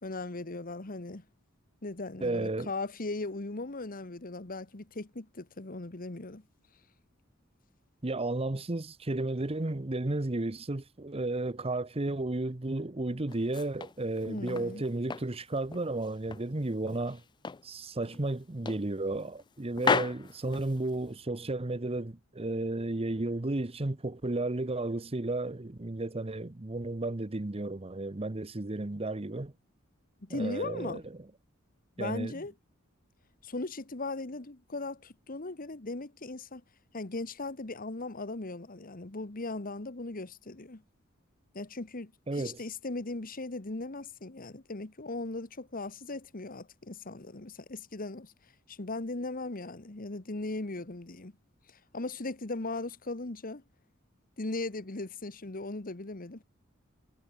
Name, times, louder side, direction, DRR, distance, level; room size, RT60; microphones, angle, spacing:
voice 1, 0.0-1.2 1.8-6.4 14.2-14.8 30.2-31.0 32.0-32.5 33.4-36.6 36.9-40.8 41.5-48.3 48.7-51.3 51.7-53.6 54.4-56.4, left 2 dB, 45° left, 1.4 m, -38 dB
voice 2, 2.2-2.7 8.0-17.2 17.6-29.5 30.3-31.2 32.0-32.3 42.3-42.6, right 2 dB, 30° right, 0.9 m, -33 dB
sound 1, 13.3-14.7 15.1-16.5 16.9-17.7 18.0-18.2 18.7-19.5 19.8-21.2, left 5 dB, 20° left, 0.4 m, -34 dB
head